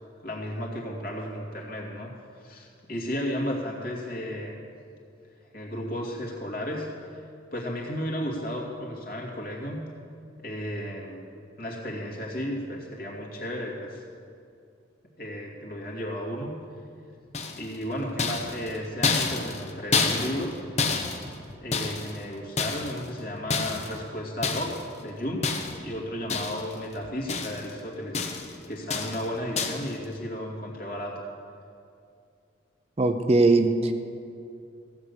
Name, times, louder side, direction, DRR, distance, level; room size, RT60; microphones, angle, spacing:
voice 1, 0.2-4.6 5.5-7.2 7.5-9.8 10.4-11.2 11.6-14.1 15.2-16.6 17.6-20.6 21.6-25.5 25.8-31.2, equal, 50° left, -2 dB, 2.5 m, -34 dB
sound 1, 17.3-17.8 18.2-20.5 20.8-22.2 22.6-23.1 23.5-24.0 24.4-24.9 25.4-25.9 26.3-26.8 27.0-27.7 28.1-28.6 28.9-29.3 29.6-29.9, left 4 dB, 35° left, 1.0 m, -29 dB
voice 2, 33.0-33.9, right 2 dB, 35° right, 7 dB, 0.6 m, -20 dB
16.0 x 7.0 x 8.3 m, 2.4 s
head